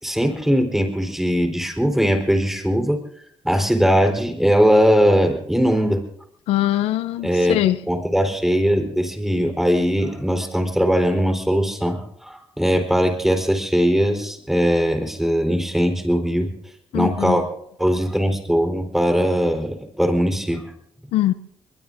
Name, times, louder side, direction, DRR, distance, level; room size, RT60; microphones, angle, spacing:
voice 1, 0.0-3.0 3.4-6.0 7.2-7.6 7.9-16.5 16.9-17.5 17.8-20.6, equal, 5° right, 5 dB, 4.1 m, -20 dB
voice 2, 6.5-7.8 16.9-17.4 21.1-21.3, left 14 dB, 85° left, 14 dB, 0.6 m, -21 dB
23.0 x 22.0 x 2.7 m, 0.68 s
cardioid pair, 80°, 10 cm